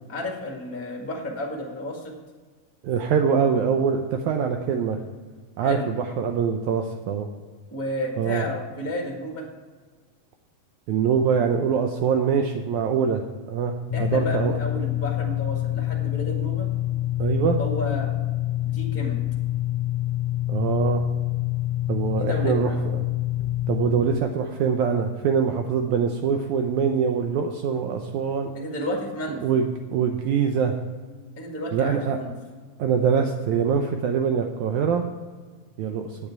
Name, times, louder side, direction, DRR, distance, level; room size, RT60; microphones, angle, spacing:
voice 1, 0.1-2.1 5.6-5.8 7.7-9.5 13.9-16.7 17.6-18.1 18.7-19.2 22.2-22.7 28.5-29.4 31.4-32.3, left 1 dB, 15° left, 0 dB, 0.5 m, -32 dB
voice 2, 2.8-5.0 5.6-7.3 8.2-8.5 10.9-13.2 13.5-14.6 17.2-17.6 20.5-21.0 21.9-23.0 23.7-28.5 29.4-30.8 31.7-32.2 32.8-35.1 35.8-36.2, right 6 dB, 75° right, 4 dB, 2.0 m, -24 dB
sound 1, 13.9-24.2, left 15 dB, 80° left, 1.6 m, -26 dB
10.5 x 8.8 x 4.7 m, 1.5 s
omnidirectional pair, 3.7 m